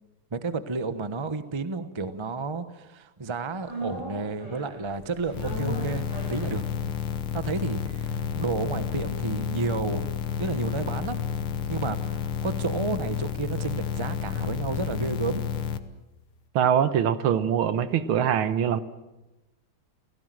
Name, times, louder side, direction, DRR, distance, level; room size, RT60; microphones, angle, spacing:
voice 1, 0.3-6.6 7.3-10.1 10.4-11.3 11.7-15.4, right 4 dB, 25° right, 0.6 m, -31 dB
sound 1, 3.6-11.9 12.2-12.3, right 1 dB, 55° right, 7.1 m, -41 dB
sound 2, 5.3-15.8, left 7 dB, 80° left, 2.0 m, -30 dB
voice 2, 16.6-18.8, right 8 dB, 75° right, 1.8 m, -23 dB
29.5 x 17.0 x 7.7 m
omnidirectional pair, 2.4 m